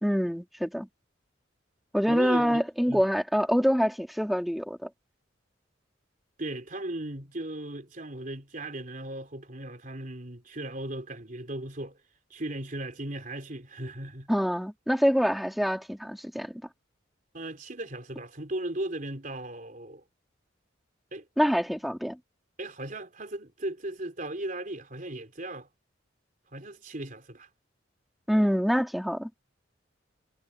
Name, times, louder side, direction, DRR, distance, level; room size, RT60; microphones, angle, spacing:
voice 1, 0.0-0.9 1.9-4.9 14.3-16.6 21.4-22.2 28.3-29.3, equal, ahead, 3.7 m, -26 dB
voice 2, 2.1-3.0 6.4-12.0 12.3-14.3 17.3-20.0 21.1-21.3 22.6-25.7 26.5-27.5, right 1 dB, 45° right, 3.5 m, -37 dB
head